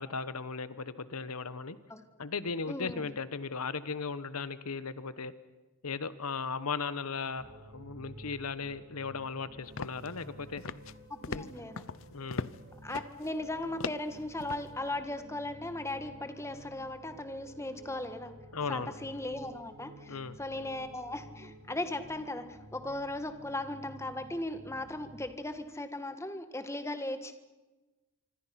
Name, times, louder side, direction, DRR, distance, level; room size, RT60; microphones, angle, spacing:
voice 1, 0.0-1.8 2.2-5.3 5.8-10.6 11.3-11.5 12.1-12.5 18.5-18.9 20.1-20.4, left 4 dB, 90° left, 15 dB, 1.2 m, -37 dB
voice 2, 2.7-3.1 11.3-11.8 12.8-18.3 18.7-27.3, left 1 dB, 10° left, 9 dB, 1.6 m, -37 dB
sound 1, 7.4-25.3, right 1 dB, 55° right, 2.6 m, -52 dB
sound 2, 9.8-10.3 10.6-11.0 11.2-12.6 12.9-13.3 13.8-14.7, left 4 dB, 65° left, 0.7 m, -39 dB
25.5 x 25.5 x 5.9 m, 1.2 s
head